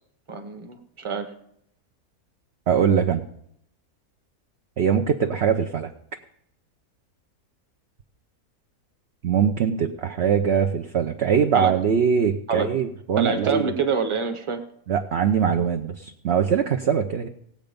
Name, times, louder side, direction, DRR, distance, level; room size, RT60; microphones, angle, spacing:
voice 1, 0.3-1.3 10.2-10.3 11.5-11.8 12.5-12.7 13.2-14.6, right 5 dB, 20° right, 7 dB, 1.0 m, -26 dB
voice 2, 2.7-3.3 4.8-5.9 9.2-13.7 14.9-17.3, right 7 dB, 55° right, 5 dB, 0.8 m, -22 dB
18.5 x 7.8 x 5.3 m, 0.74 s
omnidirectional pair, 1.6 m